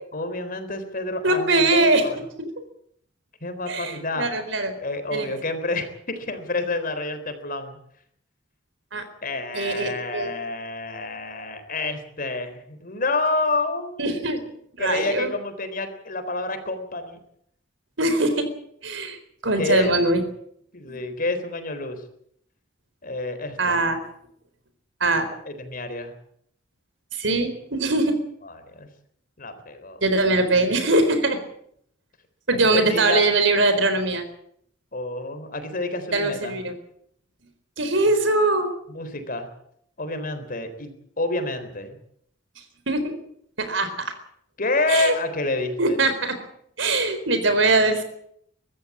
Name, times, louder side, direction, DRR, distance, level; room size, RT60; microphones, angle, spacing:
voice 1, 0.1-2.2 3.4-4.3 4.8-7.8 9.2-14.2 14.8-17.2 19.6-19.9 20.7-22.0 23.0-23.8 25.5-26.1 28.5-28.9 29.4-30.0 32.7-33.3 34.9-36.6 38.9-39.5 40.0-42.0 44.6-46.0, left 2 dB, 50° left, 9 dB, 3.8 m, -28 dB
voice 2, 1.2-2.1 2.4-2.6 3.7-4.7 5.1-5.3 8.9-9.0 9.5-10.3 14.0-14.4 14.8-15.3 18.0-18.5 18.8-19.2 19.4-20.2 20.9-21.0 23.6-24.0 25.0-25.3 27.1-28.2 30.0-31.4 32.5-34.2 36.1-36.7 37.8-38.7 42.9-43.1 43.6-44.1 44.9-45.1 45.8-46.4 46.8-48.0, right 2 dB, 75° right, 9 dB, 4.2 m, -22 dB
24.0 x 14.0 x 8.6 m, 0.69 s
head